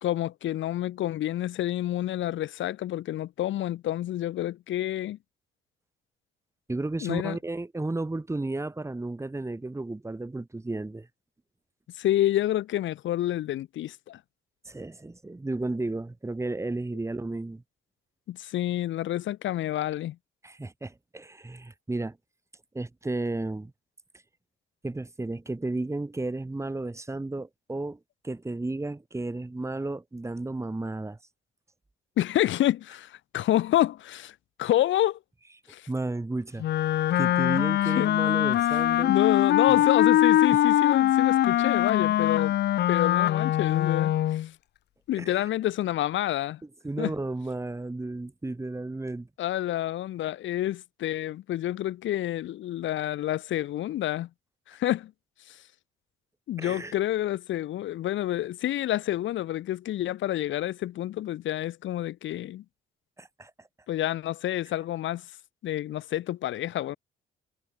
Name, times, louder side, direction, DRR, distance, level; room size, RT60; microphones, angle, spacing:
voice 1, 0.0-5.2 7.0-7.4 11.9-14.2 18.3-20.2 32.2-35.2 35.7-35.9 38.0-38.1 39.1-42.5 42.9-44.5 45.1-46.6 47.0-47.1 49.4-54.3 54.7-55.1 55.5-55.6 56.5-62.6 63.9-65.2 65.6-67.0, left 13 dB, 75° left, 1.2 m, -28 dB
voice 2, 6.7-11.1 14.6-17.6 20.4-22.2 22.7-23.7 24.8-28.0 28.2-31.2 35.9-36.9 37.2-39.1 39.7-39.8 45.2-45.5 46.8-49.3 56.6-56.9 63.2-63.5, right 2 dB, 15° right, 2.7 m, -33 dB
Wind instrument woodwind instrument, 36.6-44.5, left 13 dB, 60° left, 0.4 m, -22 dB
cardioid pair, 90°, 20 cm